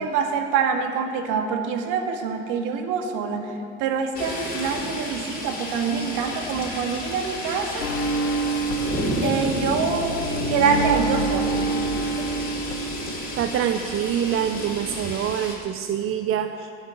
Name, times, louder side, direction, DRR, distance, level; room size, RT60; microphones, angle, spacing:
voice 1, 0.0-3.5 3.8-7.9 9.2-10.2 10.5-11.6, right 6 dB, 55° right, 4 dB, 2.1 m, -25 dB
sound 1, 4.1-15.6, left 1 dB, 25° left, 4.6 m, -32 dB
sound 2, 7.8-13.5 13.8-15.0, right 2 dB, 85° left, 1.6 m, -28 dB
voice 2, 13.1-16.7, right 9 dB, 35° right, 7 dB, 0.7 m, -26 dB
15.5 x 7.3 x 8.9 m, 2.5 s
hypercardioid pair, 90°, 37 cm